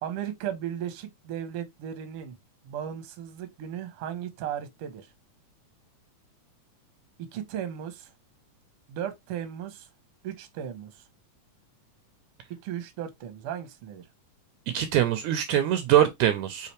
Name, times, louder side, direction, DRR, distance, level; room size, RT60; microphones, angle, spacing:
voice 1, 0.0-2.4 2.6-5.1 7.2-8.1 8.9-9.9 10.2-11.0 12.6-14.1, right 10 dB, 65° right, 1.5 m, -36 dB
voice 2, 14.7-16.7, right 11 dB, 80° right, 1.9 m, -23 dB
5.7 x 2.9 x 3.1 m
omnidirectional pair, 3.6 m